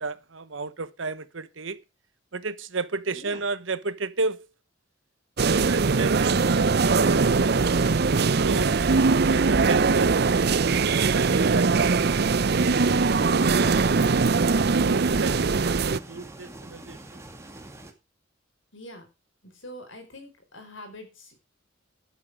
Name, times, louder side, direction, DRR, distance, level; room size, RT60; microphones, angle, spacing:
voice 1, 0.0-1.8 2.3-4.5 5.4-7.9 8.4-8.9 9.3-10.6 11.1-12.0 14.8-17.2, right 3 dB, 75° right, 1.1 m, -33 dB
voice 2, 3.1-3.4 13.2-14.4 18.7-19.1 19.4-21.3, left 1 dB, 75° left, 4.9 m, -44 dB
sound 1, 5.4-16.0, right 4 dB, 55° right, 0.6 m, -21 dB
sound 2, 9.8-17.9, right 1 dB, 15° right, 2.2 m, -44 dB
12.0 x 9.4 x 4.8 m
head